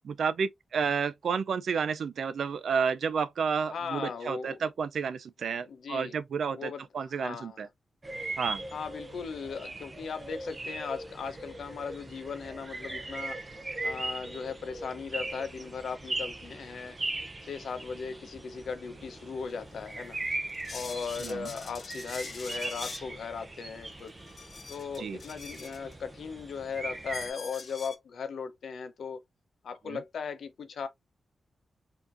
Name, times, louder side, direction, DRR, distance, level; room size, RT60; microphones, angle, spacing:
voice 1, 0.0-7.7 8.4-8.6 21.2-21.5 25.0-25.2 29.9-30.0, right 6 dB, 70° right, 0.5 m, -31 dB
voice 2, 3.7-4.6 5.7-6.2 6.6-7.7 8.7-13.4 13.8-17.0 17.4-20.2 20.7-24.1 24.7-29.2 29.6-30.9, left 5 dB, 75° left, 0.9 m, -38 dB
sound 1, 8.0-27.3, right 2 dB, 25° right, 0.7 m, -39 dB
sound 2, 19.5-19.6 20.1-23.1 23.9-25.9 26.5-26.6 27.1-28.0, left 4 dB, 45° left, 0.6 m, -44 dB
4.4 x 2.9 x 2.6 m
wide cardioid pair, 155°, 0 cm